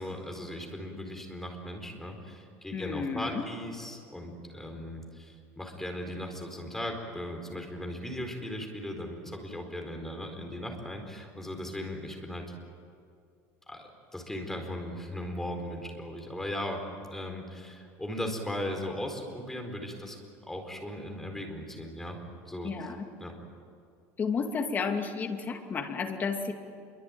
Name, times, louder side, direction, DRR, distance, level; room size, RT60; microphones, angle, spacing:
voice 1, 0.0-12.4 13.7-13.8 14.1-16.8 17.1-20.2 20.5-22.2 22.5-22.7 23.2-23.3, left 1 dB, 5° left, 3 dB, 4.4 m, -37 dB
voice 2, 2.7-3.4 22.6-23.1 24.2-26.5, left 5 dB, 25° left, 4 dB, 2.5 m, -32 dB
27.5 x 24.0 x 9.1 m, 2.3 s
cardioid pair, 150°, 7 cm